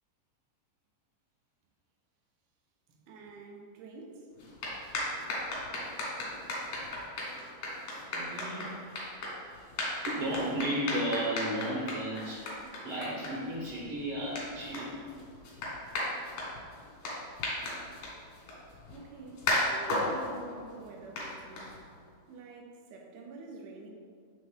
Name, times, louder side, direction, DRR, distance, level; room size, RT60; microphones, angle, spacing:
voice 1, 3.1-4.3 18.9-21.8 22.3-23.9, right 3 dB, 90° right, 0 dB, 2.2 m, -47 dB
sound 1, 4.4-22.1, left 1 dB, 90° left, 2.8 m, -37 dB
voice 2, 8.1-8.7 9.4-9.5 10.1-12.4 12.8-14.9, right 1 dB, 70° right, -5 dB, 1.7 m, -34 dB
7.6 x 3.5 x 3.6 m, 2.1 s
omnidirectional pair, 3.3 m